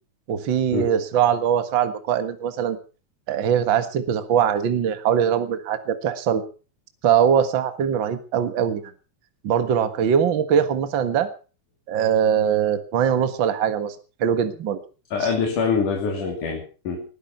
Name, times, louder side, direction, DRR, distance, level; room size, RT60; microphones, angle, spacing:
voice 1, 0.3-2.8 3.3-6.4 7.0-8.8 9.4-11.3 11.9-14.0 14.2-14.8 15.2-15.3, right 8 dB, 45° right, 10 dB, 1.9 m, -21 dB
voice 2, 15.1-17.0, left 5 dB, 90° left, 2 dB, 4.3 m, -24 dB
20.5 x 12.0 x 5.7 m, 0.38 s
omnidirectional pair, 3.5 m